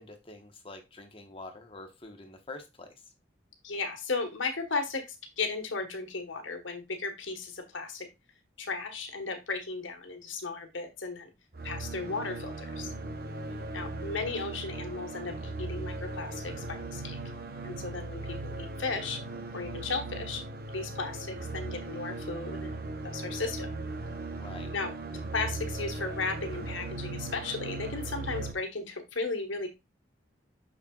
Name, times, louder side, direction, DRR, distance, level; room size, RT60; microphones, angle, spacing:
voice 1, 0.0-3.0 13.3-13.7 24.3-24.7, left 2 dB, 25° left, 5 dB, 1.2 m, -46 dB
voice 2, 3.6-8.1 8.6-11.3 11.6-12.9 13.7-17.2 17.6-19.2 19.5-20.4 20.7-23.7 24.7-24.9 25.3-29.7, left 3 dB, 80° left, 5 dB, 1.4 m, -35 dB
sound 1, 11.5-28.5, right 2 dB, 50° right, 0.9 m, -38 dB
6.5 x 6.3 x 2.4 m, 0.22 s
head